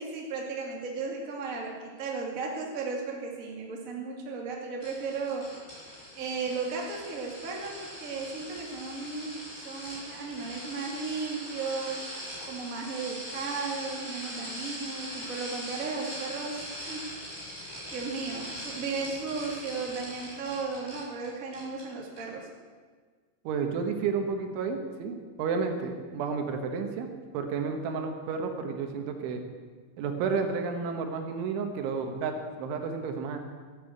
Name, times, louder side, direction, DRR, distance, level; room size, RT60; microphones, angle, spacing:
voice 1, 0.0-5.5 6.1-12.1 12.5-22.5, right 4 dB, 30° right, -1 dB, 1.6 m, -35 dB
sound 1, 4.8-21.3 21.5-21.8 22.2-22.3, equal, 15° left, 5.9 m, -41 dB
voice 2, 23.5-29.4 30.0-33.4, right 5 dB, 80° right, 5 dB, 3.7 m, -31 dB
13.5 x 11.0 x 8.0 m, 1.5 s
omnidirectional pair, 5.5 m